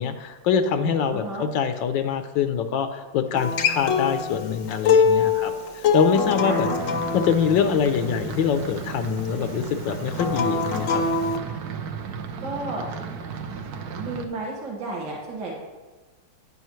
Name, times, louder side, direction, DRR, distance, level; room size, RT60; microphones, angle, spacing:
voice 1, 0.0-5.5 5.9-6.7 7.1-11.0, left 7 dB, 80° left, 8 dB, 1.4 m, -24 dB
voice 2, 1.1-1.5 6.4-6.8 12.4-12.9 14.0-15.6, right 2 dB, 80° right, -4 dB, 2.5 m, -32 dB
Acoustic guitar, 3.4-8.6 10.1-11.4, left 5 dB, 60° left, 0.9 m, -23 dB
sound 1, 6.8-14.3, right 6 dB, 65° right, 1.2 m, -35 dB
11.5 x 9.6 x 3.1 m, 1.2 s
omnidirectional pair, 2.1 m